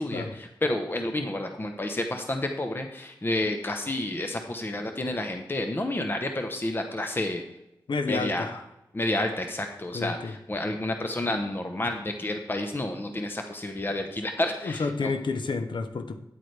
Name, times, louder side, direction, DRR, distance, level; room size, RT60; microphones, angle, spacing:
voice 1, 0.0-7.4 8.1-8.5 8.9-15.1, left 1 dB, 25° left, 5 dB, 0.9 m, -30 dB
voice 2, 7.9-8.6 9.9-10.3 14.6-16.2, left 4 dB, 70° left, 9 dB, 0.9 m, -30 dB
9.6 x 8.4 x 3.3 m, 0.88 s
wide cardioid pair, 70°, 8 cm